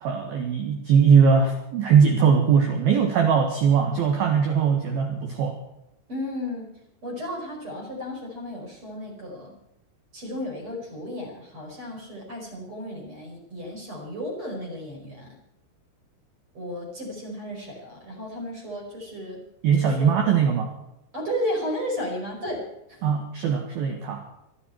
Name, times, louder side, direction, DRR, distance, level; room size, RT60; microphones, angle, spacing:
voice 1, 0.0-5.6 19.6-20.7 23.0-24.2, right 6 dB, 60° right, 3 dB, 2.9 m, -20 dB
voice 2, 6.1-9.5 10.1-15.4 16.5-19.4 19.8-20.1 21.1-23.0, left 1 dB, 25° right, 2 dB, 5.3 m, -34 dB
28.0 x 9.9 x 4.5 m, 0.85 s
omnidirectional pair, 6.0 m